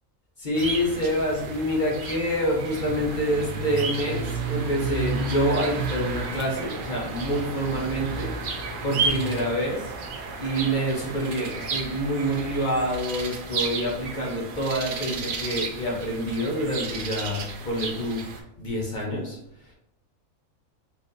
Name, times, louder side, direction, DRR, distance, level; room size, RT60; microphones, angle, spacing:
voice 1, 0.4-9.9 10.4-18.2 18.6-19.4, equal, 45° left, -2 dB, 0.6 m, -27 dB
sound 1, 0.5-18.4, right 4 dB, 75° right, 0.4 m, -32 dB
3.9 x 2.6 x 2.5 m, 0.79 s
omnidirectional pair, 1.4 m